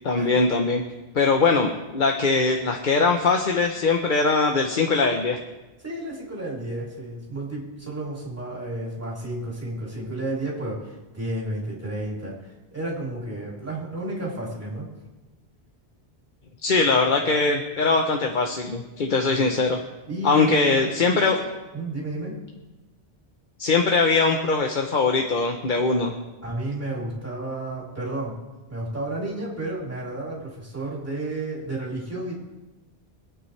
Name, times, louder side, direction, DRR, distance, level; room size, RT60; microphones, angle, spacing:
voice 1, 0.0-0.8 1.1-5.4 16.6-19.8 20.2-21.4 23.6-26.2, left 4 dB, 50° left, 3 dB, 1.0 m, -21 dB
voice 2, 5.8-12.4 12.7-14.9 20.1-21.4 21.7-22.4 26.4-28.4 28.7-32.4, right 1 dB, 15° right, -5 dB, 3.2 m, -32 dB
25.5 x 9.0 x 3.3 m, 1.1 s
omnidirectional pair, 1.1 m